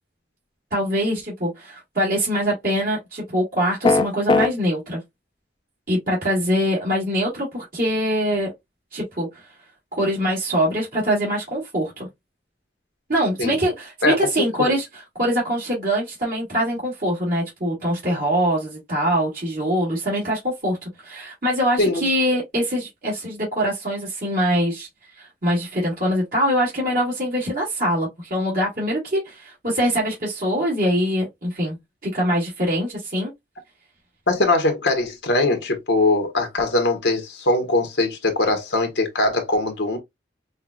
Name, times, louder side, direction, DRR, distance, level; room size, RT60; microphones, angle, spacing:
voice 1, 0.7-5.0 5.9-8.5 8.9-9.3 9.9-12.1 13.1-14.8 15.2-24.9 25.2-31.8 32.0-33.3, equal, 55° right, 2.0 m, -23 dB
sound 1, 3.8-4.5, left 3 dB, 25° left, 0.5 m, -17 dB
voice 2, 14.0-14.7 21.8-22.0 34.3-40.0, left 2 dB, 85° left, 1.2 m, -21 dB
5.5 x 2.3 x 2.3 m
head